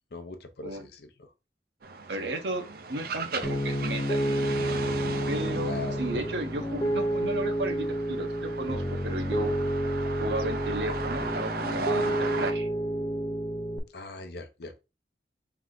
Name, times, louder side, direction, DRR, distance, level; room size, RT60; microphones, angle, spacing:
voice 1, 0.1-1.3 2.2-2.3 5.6-6.1 13.9-14.8, left 3 dB, 60° left, 0.7 m, -40 dB
sound 1, 1.8-12.5, right 4 dB, 55° right, 0.5 m, -37 dB
voice 2, 2.1-2.6 2.9-4.3 5.3-9.6 10.2-12.7, right 1 dB, 80° right, 0.9 m, -34 dB
Piano, 3.4-13.8, right 1 dB, 20° left, 0.6 m, -29 dB
3.5 x 3.2 x 3.8 m
head